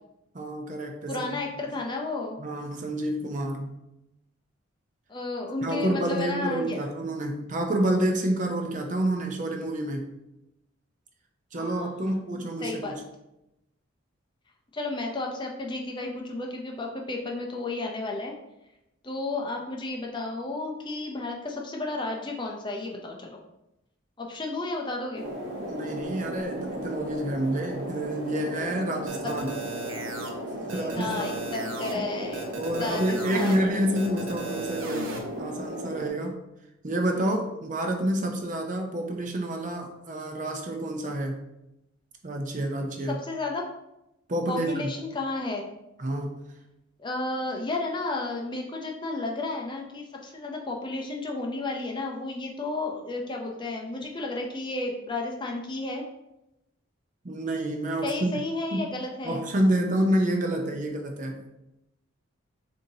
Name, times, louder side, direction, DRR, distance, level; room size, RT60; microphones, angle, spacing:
voice 1, 0.3-1.4 1.7-1.8 2.4-3.8 5.6-10.1 11.5-13.0 25.7-29.6 30.7-31.4 32.6-36.4 36.8-41.4 42.2-43.2 44.3-44.9 46.0-46.5 57.2-58.4 58.7-59.0 59.2-61.4, right 1 dB, 35° right, 3 dB, 0.6 m, -28 dB
voice 2, 1.1-2.4 5.1-6.8 11.5-11.9 12.3-13.0 14.7-18.4 19.0-23.4 24.2-25.3 29.2-29.3 30.5-32.5 32.8-33.7 43.1-43.7 44.5-45.7 47.0-56.0 58.0-59.4, left 2 dB, 20° left, 1 dB, 0.5 m, -32 dB
sound 1, 25.1-36.1, equal, 50° right, 1.2 m, -36 dB
sound 2, 29.1-30.3 30.7-31.9 32.3-33.6 34.0-35.2, right 4 dB, 70° right, 0.8 m, -37 dB
6.7 x 2.7 x 2.7 m, 0.89 s
head